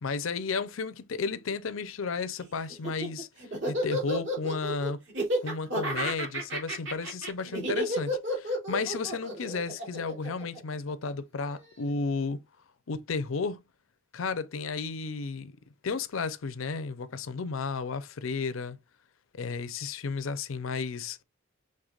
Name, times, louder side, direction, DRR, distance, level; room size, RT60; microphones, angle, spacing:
voice 1, 0.0-3.3 3.7-5.0 5.4-12.4 12.9-13.6 14.1-15.5 15.8-18.8 19.3-21.2, left 4 dB, 90° left, 0.6 m, -33 dB
Laughter, 2.7-11.1, right 1 dB, 65° right, 2.8 m, -31 dB
6.6 x 3.3 x 2.4 m
head